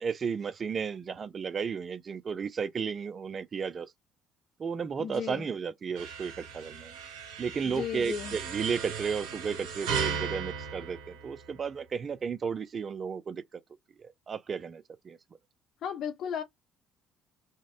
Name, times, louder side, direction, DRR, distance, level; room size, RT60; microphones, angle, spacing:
voice 1, 0.0-3.9 4.6-6.9 7.4-13.4 14.0-15.2, right 6 dB, 40° right, 0.3 m, -33 dB
voice 2, 5.0-5.5 7.6-8.4 15.8-16.4, left 8 dB, 60° left, 0.5 m, -35 dB
sound 1, 6.0-11.8, right 6 dB, 85° right, 0.8 m, -37 dB
2.6 x 2.0 x 2.4 m
supercardioid pair, 75°, 0 cm